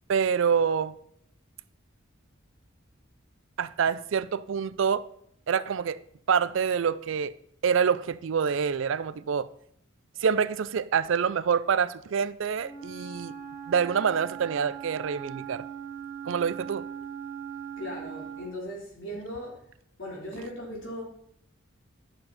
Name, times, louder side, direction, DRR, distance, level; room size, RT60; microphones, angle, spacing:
voice 1, 0.1-0.9 3.6-5.1 5.5-6.0 6.3-7.3 7.6-9.5 10.2-13.3 13.7-15.6 16.3-16.8, right 6 dB, 70° right, 0.4 m, -26 dB
Wind instrument woodwind instrument, 12.6-18.6, right 8 dB, 20° right, 1.5 m, -40 dB
voice 2, 17.8-19.6 20.0-21.0, equal, 70° left, 3.8 m, -38 dB
11.0 x 6.9 x 4.1 m
head